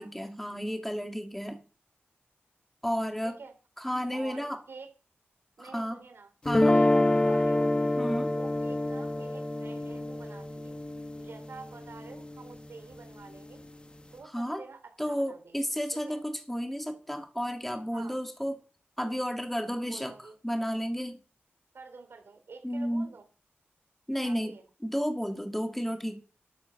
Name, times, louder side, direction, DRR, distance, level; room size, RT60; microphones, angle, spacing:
voice 1, 0.0-1.6 2.8-3.4 3.8-4.6 5.6-6.0 6.5-6.8 8.0-8.3 14.2-14.6 15.0-18.5 19.0-20.1 20.4-21.2 22.6-23.1 24.1-24.5 24.8-26.2, equal, 5° left, 5 dB, 2.3 m, -32 dB
voice 2, 3.2-3.5 4.1-4.9 5.6-7.8 8.3-10.8 11.2-13.7 14.1-15.6 15.9-16.2 17.9-18.2 19.8-20.4 21.7-23.3 24.2-24.7, right 4 dB, 70° right, 5 dB, 3.9 m, -48 dB
sound 1, 6.5-12.6, left 1 dB, 25° left, 1.3 m, -27 dB
12.0 x 10.0 x 6.8 m, 0.37 s
wide cardioid pair, 110°, 4 cm